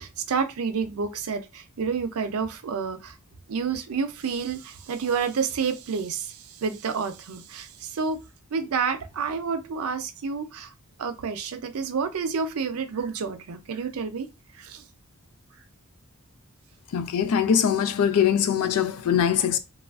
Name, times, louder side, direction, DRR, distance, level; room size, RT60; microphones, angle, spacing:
voice 1, 0.0-3.1 3.5-8.2 8.5-10.7 11.0-14.3 14.6-14.8, right 5 dB, 75° right, 0.5 m, -29 dB
voice 2, 16.9-19.6, left 8 dB, 85° left, 0.4 m, -22 dB
3.0 x 2.3 x 2.3 m
head